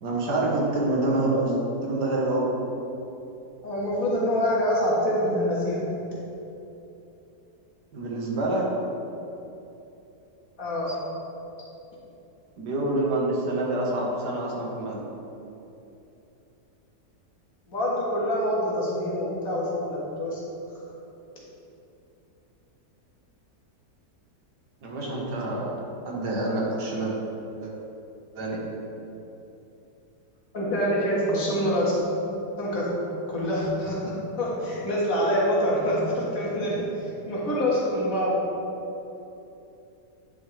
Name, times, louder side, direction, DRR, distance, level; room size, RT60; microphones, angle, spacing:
voice 1, 0.0-1.5 1.8-2.5 7.9-8.6 10.9-11.0 12.6-15.1 24.8-25.7 26.1-27.1 27.6-27.7 28.4-28.6, right 2 dB, 85° right, -3 dB, 1.8 m, -27 dB
voice 2, 3.6-5.9 10.6-10.9 17.7-20.4 30.5-32.0 32.6-32.9 33.3-34.0 34.4-38.4, equal, 55° left, -6 dB, 1.9 m, -25 dB
10.0 x 5.3 x 3.2 m, 2.9 s
omnidirectional pair, 1.8 m